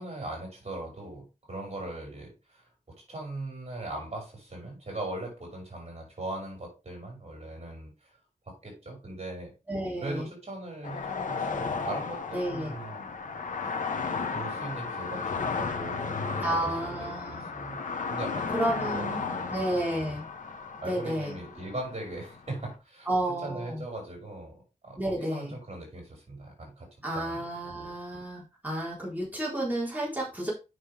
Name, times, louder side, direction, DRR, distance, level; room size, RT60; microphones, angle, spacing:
voice 1, 0.0-2.7 3.1-8.1 8.4-9.5 10.0-13.1 14.3-17.8 18.1-19.7 20.0-20.1 20.8-23.1 23.4-24.5 24.8-26.9 27.1-27.4, right 2 dB, 55° right, 0 dB, 5.1 m, -39 dB
voice 2, 9.7-10.3 12.3-12.7 16.4-17.5 18.5-19.2 19.5-20.2 20.8-21.3 23.1-23.8 25.0-25.5 27.0-30.5, right 1 dB, 15° right, -4 dB, 4.1 m, -31 dB
sound 1, 10.8-22.7, left 5 dB, 90° left, 1.2 m, -34 dB
7.8 x 6.2 x 3.5 m, 0.28 s
wide cardioid pair, 70°, 13 cm